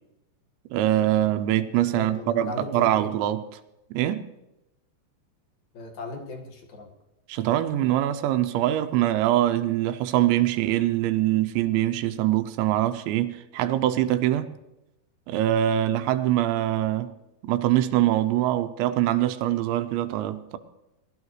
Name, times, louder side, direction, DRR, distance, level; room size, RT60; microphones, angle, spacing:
voice 1, 0.7-3.4 3.9-4.3 7.3-14.5 15.3-17.1 17.4-20.6, right 13 dB, 85° right, 3.0 m, -23 dB
voice 2, 1.9-3.1 5.7-6.9, left 2 dB, 55° left, 2.3 m, -37 dB
21.0 x 13.0 x 3.2 m
omnidirectional pair, 5.2 m